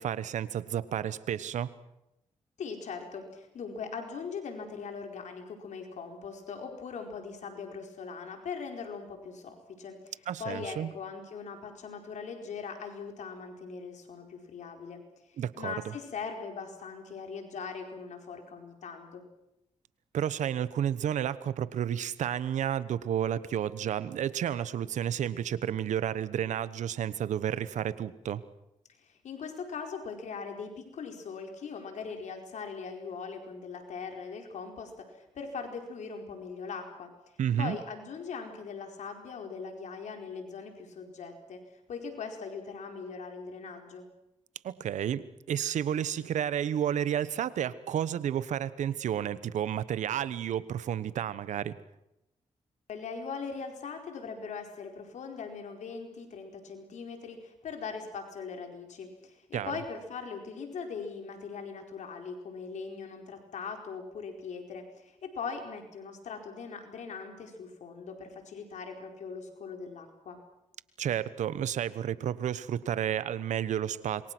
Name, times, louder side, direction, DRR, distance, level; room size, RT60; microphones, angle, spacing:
voice 1, 0.0-1.7 10.3-10.9 15.4-15.9 20.1-28.4 37.4-37.8 44.6-51.8 59.5-59.7 71.0-74.3, right 9 dB, 85° right, 16 dB, 1.1 m, -31 dB
voice 2, 2.6-10.1 10.4-15.0 15.3-19.2 28.9-37.1 37.6-41.6 41.9-44.1 52.9-70.4, left 5 dB, 80° left, 4 dB, 4.7 m, -40 dB
27.0 x 23.0 x 6.2 m, 0.87 s
cardioid pair, 55°, 12 cm